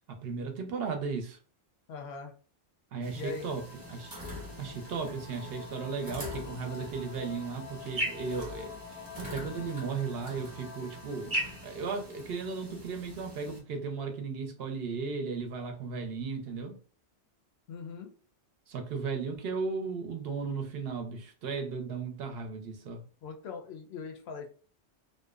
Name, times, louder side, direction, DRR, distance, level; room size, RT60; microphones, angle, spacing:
voice 1, 0.1-1.4 2.9-3.6 3.9-4.1 4.6-8.8 9.2-11.4 11.6-16.8 18.7-23.0, right 5 dB, 65° right, 0.7 m, -35 dB
voice 2, 1.9-2.3 3.1-3.5 17.7-18.1 23.2-24.5, left 5 dB, 70° left, 0.8 m, -41 dB
sound 1, 3.0-13.6, equal, 20° right, 0.7 m, -41 dB
sound 2, 3.1-13.5, left 6 dB, 85° left, 1.0 m, -49 dB
2.6 x 2.1 x 2.3 m
omnidirectional pair, 1.2 m